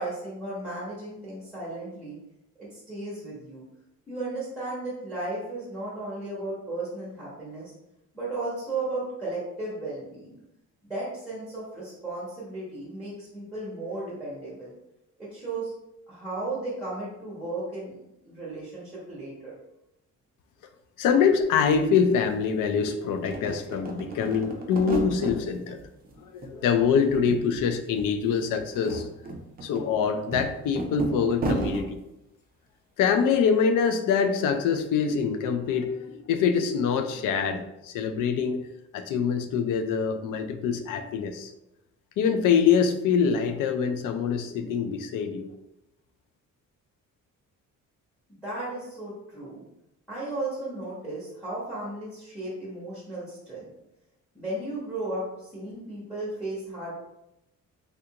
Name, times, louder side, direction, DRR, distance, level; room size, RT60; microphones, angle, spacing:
voice 1, 0.0-2.2 2.6-3.6 4.1-7.7 8.1-10.4 10.8-14.7 15.2-15.7 16.1-18.0 18.2-19.5 48.4-49.7 50.1-53.7 54.3-56.9, right 2 dB, ahead, -7 dB, 0.8 m, -35 dB
voice 2, 21.0-25.8 26.2-29.1 29.6-32.0 33.0-38.7 38.9-41.5 42.2-45.5, left 6 dB, 80° left, 8 dB, 0.5 m, -24 dB
sound 1, 21.4-21.5 21.7-22.8 23.2-25.4 25.8-26.5 26.8-27.7 27.9-28.1 28.6-31.8, right 2 dB, 30° right, 0.4 m, -33 dB
3.4 x 2.5 x 2.8 m, 0.87 s
cardioid pair, 165°, 32 cm